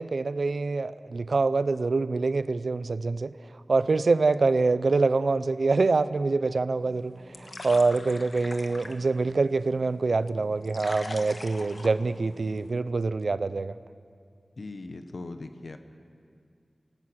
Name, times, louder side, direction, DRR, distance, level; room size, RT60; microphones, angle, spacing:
voice 1, 0.0-3.3 3.7-13.7, right 3 dB, 85° right, 15 dB, 0.5 m, -25 dB
sound 1, 6.8-12.7, left 2 dB, 65° left, 1.3 m, -44 dB
voice 2, 14.6-15.8, left 3 dB, 85° left, 8 dB, 1.1 m, -39 dB
27.5 x 17.5 x 6.3 m, 2.3 s
wide cardioid pair, 70°, 0 cm